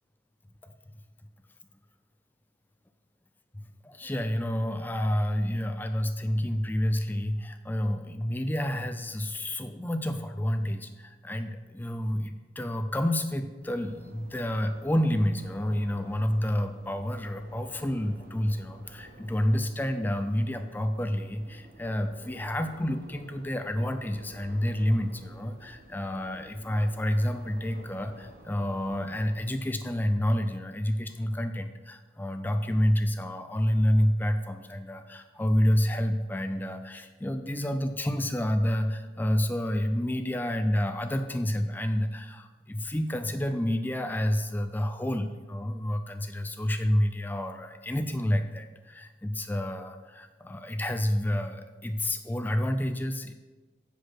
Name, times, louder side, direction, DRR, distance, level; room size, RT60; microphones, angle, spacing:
voice 1, 3.5-53.3, equal, 10° left, 8 dB, 0.4 m, -29 dB
sound 1, 13.6-29.6, right 1 dB, 50° right, 1.0 m, -52 dB
8.2 x 5.1 x 5.9 m, 1.2 s
head